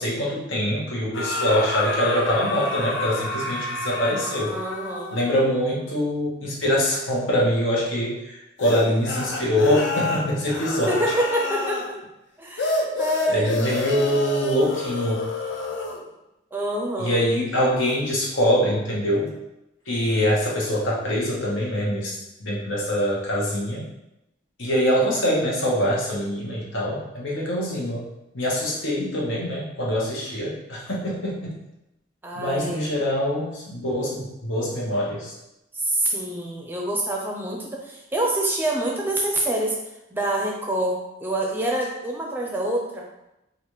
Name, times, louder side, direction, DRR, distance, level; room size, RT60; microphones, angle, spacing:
voice 1, 0.0-4.5 5.1-10.9 13.3-15.2 17.0-19.3 19.9-23.8 24.6-28.0 28.3-31.6 32.3-35.3, equal, 85° left, -4 dB, 1.0 m, -24 dB
sound 1, 1.1-5.6 8.6-11.9 12.6-16.0, left 2 dB, 70° left, 0.5 m, -29 dB
voice 2, 4.5-5.2 10.9-12.0 12.4-13.6 16.5-17.2 32.2-32.8 35.7-39.8 40.1-43.0, right 1 dB, 10° right, -1 dB, 0.4 m, -26 dB
3.9 x 2.4 x 3.1 m, 0.90 s
head